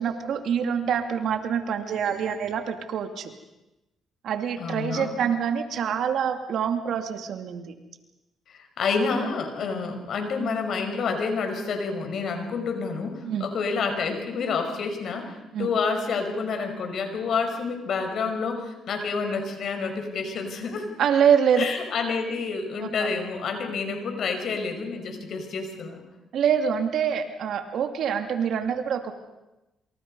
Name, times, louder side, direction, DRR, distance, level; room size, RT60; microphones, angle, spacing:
voice 1, 0.0-3.3 4.2-7.7 13.2-13.5 15.5-15.7 21.0-21.6 22.8-23.1 26.3-29.1, right 8 dB, 70° right, 7 dB, 2.5 m, -25 dB
voice 2, 4.6-5.1 8.5-20.9 21.6-26.0, left 4 dB, 65° left, 5 dB, 5.5 m, -29 dB
27.5 x 26.0 x 5.5 m, 0.98 s
cardioid pair, 90°, 0 cm